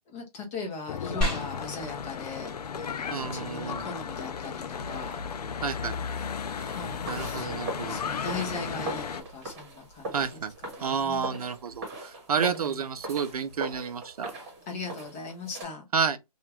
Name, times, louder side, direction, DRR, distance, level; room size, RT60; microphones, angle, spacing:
voice 1, 0.1-5.2 6.7-11.4 12.3-12.8 14.7-15.9, left 4 dB, 20° left, 0.9 m, -39 dB
Church bell / Traffic noise roadway noise, 0.9-9.2, left 6 dB, 75° left, 0.5 m, -35 dB
sound 1, 1.2-11.2, equal, 5° left, 1.4 m, -41 dB
voice 2, 3.1-3.8 5.6-6.0 7.1-8.0 10.1-10.5 10.8-14.3 15.9-16.2, right 6 dB, 65° right, 0.5 m, -30 dB
sound 2, 6.5-15.6, right 1 dB, 25° right, 1.3 m, -40 dB
2.8 x 2.4 x 2.9 m
hypercardioid pair, 155°, 20 cm